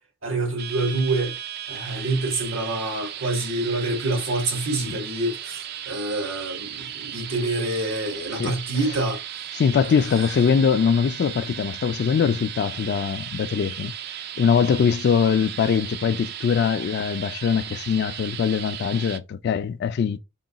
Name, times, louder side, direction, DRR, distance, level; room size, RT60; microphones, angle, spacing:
voice 1, 0.2-1.3 1.7-9.5 9.8-10.4, right 2 dB, 80° right, 1.5 m, -27 dB
sound 1, 0.6-19.2, right 10 dB, 55° right, 0.4 m, -36 dB
voice 2, 9.5-13.9 14.4-20.2, left 6 dB, 55° left, 0.3 m, -22 dB
3.7 x 2.3 x 3.9 m
head